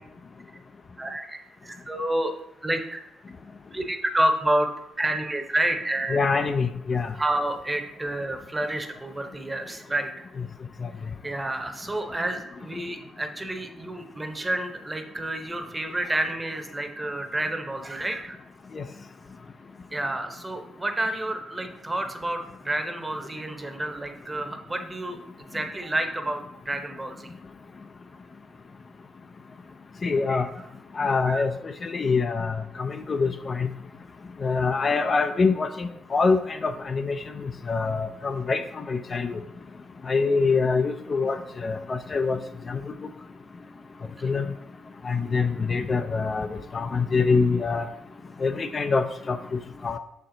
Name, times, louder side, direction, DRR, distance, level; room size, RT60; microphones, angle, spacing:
voice 1, 1.0-2.3 2.6-3.0 3.7-4.7 5.0-6.2 7.1-10.1 11.2-18.4 19.9-27.3 30.3-30.7 31.2-31.4 44.2-44.3, right 1 dB, 15° right, 5 dB, 0.8 m, -29 dB
voice 2, 6.1-7.1 18.8-18.9 30.0-30.5 31.0-31.5 31.8-33.7 34.4-37.1 37.4-39.3 40.1-42.4 42.7-42.8 44.2-44.5 45.0-46.5 46.7-47.9 48.4-50.0, left 4 dB, 35° left, 8 dB, 0.4 m, -25 dB
6.4 x 4.3 x 3.8 m, 0.86 s
cardioid pair, 90°, 0 cm